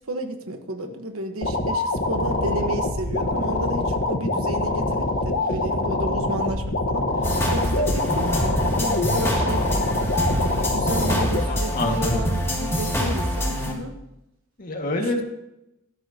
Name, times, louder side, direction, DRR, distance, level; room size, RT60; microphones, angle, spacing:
voice 1, 0.1-9.7 10.7-13.9 15.0-15.2, right 1 dB, 80° right, 6 dB, 1.3 m, -32 dB
sound 1, 1.4-11.4, left 2 dB, 65° left, 1.3 m, -24 dB
sound 2, 7.2-13.7, equal, 15° left, 2.4 m, -25 dB
voice 2, 11.4-12.2 14.6-15.2, left 2 dB, 40° left, 2 dB, 2.0 m, -26 dB
17.5 x 12.5 x 2.9 m, 0.88 s
head